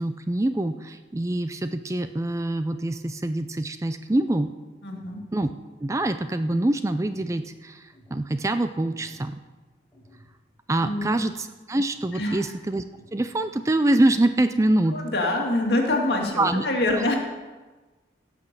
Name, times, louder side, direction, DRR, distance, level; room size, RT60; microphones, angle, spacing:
voice 1, 0.0-4.5 5.3-5.5 5.8-9.4 10.7-12.8 13.1-15.0 16.4-16.7, right 1 dB, 15° right, 10 dB, 0.4 m, -25 dB
voice 2, 4.8-5.2 10.8-11.1 12.1-12.4 14.9-17.2, left 2 dB, 65° left, 1 dB, 2.1 m, -25 dB
sound 1, 4.9-5.3 5.9-6.3 6.9-7.3 7.9-8.3 8.9-9.3 9.9-10.3 10.9-11.3 11.9-12.3 12.9-13.3, equal, 10° left, 4.3 m, -53 dB
17.0 x 6.0 x 6.6 m, 1.3 s
head